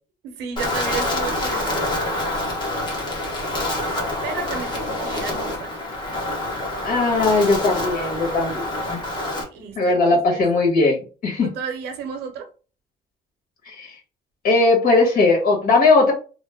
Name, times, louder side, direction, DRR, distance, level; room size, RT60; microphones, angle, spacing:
voice 1, 0.2-2.1 3.9-5.7 9.4-10.4 11.4-12.5, right 6 dB, 80° right, 5 dB, 0.9 m, -33 dB
Wind, 0.6-9.4, left 1 dB, 25° left, 1.2 m, -26 dB
voice 2, 6.8-9.0 9.7-11.5 13.7-13.9 14.4-16.1, left 3 dB, 60° left, 1 dB, 1.6 m, -18 dB
3.1 x 2.1 x 3.5 m, 0.35 s
cardioid pair, 110°, 17 cm